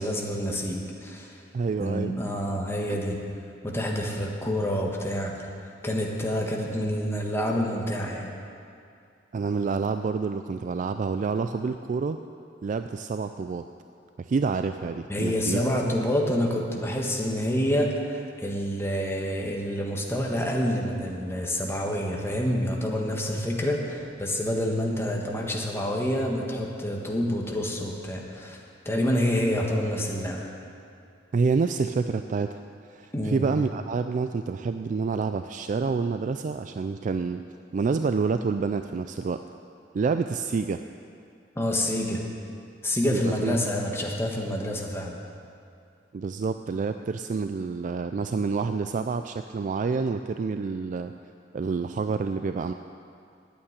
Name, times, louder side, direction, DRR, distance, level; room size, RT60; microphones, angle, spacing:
voice 1, 0.0-1.4 1.8-3.2 3.6-5.5 5.8-8.3 15.1-28.6 28.8-30.5 33.1-33.4 41.5-42.2 42.8-45.2, equal, 15° left, -1 dB, 1.5 m, -27 dB
voice 2, 1.5-2.1 2.9-3.0 9.3-12.2 12.6-13.7 14.2-15.6 31.3-32.6 32.9-37.4 37.7-39.4 39.9-40.8 43.1-43.6 46.1-51.1 51.5-52.7, right 4 dB, 45° right, 8 dB, 0.3 m, -28 dB
9.2 x 8.7 x 9.6 m, 2.4 s
head